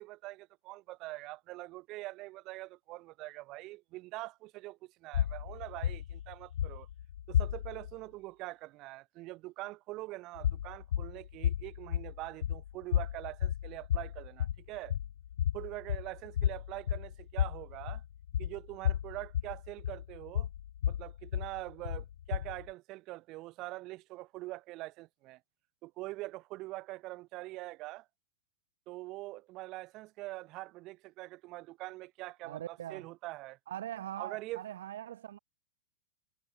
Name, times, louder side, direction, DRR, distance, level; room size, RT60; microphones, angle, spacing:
voice 1, 0.0-6.9 7.3-15.0 15.5-18.0 18.4-20.5 20.8-25.4 25.8-28.1 28.9-33.6 34.2-34.6, right 20 dB, 45° right, 5.5 m, -44 dB
sound 1, 5.1-7.9 10.3-22.7, left 10 dB, 75° left, 1.5 m, -33 dB
voice 2, 32.4-33.1 33.7-35.4, right 11 dB, 70° right, 2.9 m, -41 dB
hypercardioid pair, 100°, 0 cm